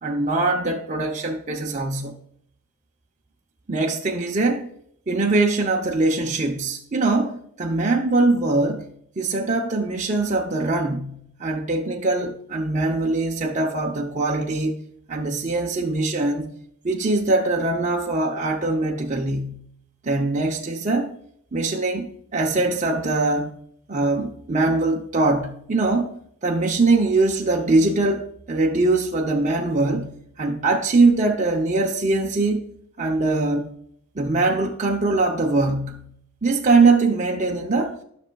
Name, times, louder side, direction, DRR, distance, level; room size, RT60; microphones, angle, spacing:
voice 1, 0.0-2.1 3.7-4.7 5.1-8.9 9.2-14.8 15.1-16.5 16.8-19.6 20.0-21.1 21.5-23.5 23.9-30.1 30.4-32.7 33.0-33.7 34.2-36.1 36.4-38.0, right 3 dB, 35° right, 0.6 m, -22 dB
12.5 x 6.2 x 2.3 m
head